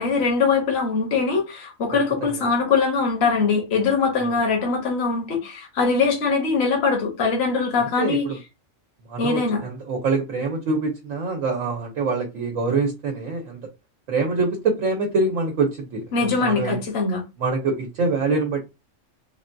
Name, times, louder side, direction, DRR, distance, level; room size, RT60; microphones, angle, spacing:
voice 1, 0.0-8.3 9.2-9.6 16.1-17.2, left 4 dB, 55° left, 1.1 m, -22 dB
voice 2, 1.9-2.5 4.2-4.4 7.8-8.4 9.1-13.6 14.1-16.8 17.4-18.6, right 3 dB, 85° right, 1.1 m, -25 dB
3.5 x 2.2 x 2.6 m
omnidirectional pair, 1.3 m